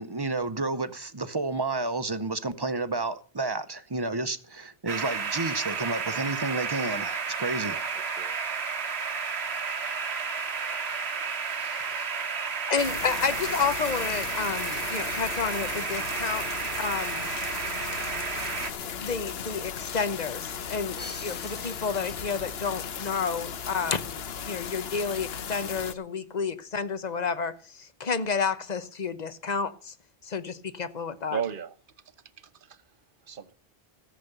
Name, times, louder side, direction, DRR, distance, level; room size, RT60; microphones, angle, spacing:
voice 1, 0.0-7.8, right 3 dB, 25° right, 0.7 m, -31 dB
sound 1, 4.9-18.7, right 5 dB, 90° right, 1.4 m, -32 dB
voice 2, 7.6-8.4 11.4-11.9 31.3-31.7 32.7-32.8 33.3-33.5, right 8 dB, 60° right, 1.1 m, -36 dB
voice 3, 12.7-17.3 18.8-29.9 30.2-31.4, left 5 dB, 45° left, 1.0 m, -31 dB
sound 2, 12.8-25.9, left 7 dB, 75° left, 1.0 m, -36 dB
Crash cymbal, 21.0-22.8, left 1 dB, 10° left, 0.9 m, -45 dB
14.5 x 7.4 x 6.7 m
omnidirectional pair, 1.0 m